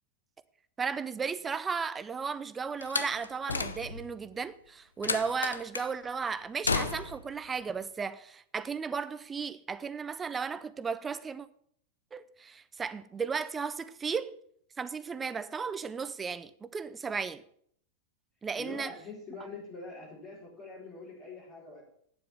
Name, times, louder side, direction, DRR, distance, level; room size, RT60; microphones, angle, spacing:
voice 1, 0.8-11.5 12.1-14.3 14.8-17.4 18.4-18.9, right 5 dB, 15° right, 0.6 m, -35 dB
Slam, 2.8-4.2 5.0-5.9 6.6-7.3, left 4 dB, 75° left, 0.7 m, -33 dB
voice 2, 18.6-21.8, left 3 dB, 35° left, 4.1 m, -44 dB
9.2 x 7.6 x 6.9 m
figure-of-eight pair, 90°, 0 cm